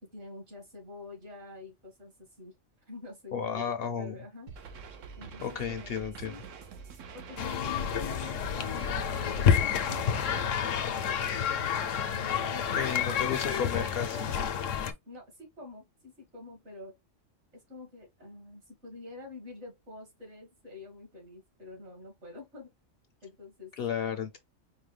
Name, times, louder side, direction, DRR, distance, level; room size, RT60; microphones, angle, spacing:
voice 1, 0.0-2.6 2.9-4.5 5.2-5.9 6.2-6.4 7.1-11.4 12.1-14.4 15.0-17.0 17.5-22.7 23.2-23.7, left 3 dB, 60° right, 2.1 m, -47 dB
voice 2, 3.3-4.2 5.4-6.3 12.7-14.3 23.8-24.4, left 7 dB, 60° left, 0.7 m, -33 dB
sound 1, 4.5-10.5, right 6 dB, 80° right, 1.1 m, -45 dB
sound 2, 7.4-14.9, left 8 dB, 80° left, 1.0 m, -29 dB
4.6 x 2.2 x 3.2 m
omnidirectional pair, 1.3 m